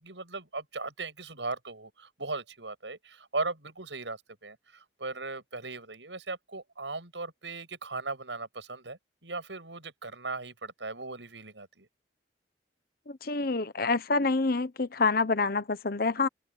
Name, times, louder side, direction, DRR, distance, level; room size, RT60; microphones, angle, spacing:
voice 1, 0.0-11.9, right 3 dB, 90° right, 8.0 m, -38 dB
voice 2, 13.1-16.3, left 3 dB, 55° left, 1.1 m, -27 dB
open air
head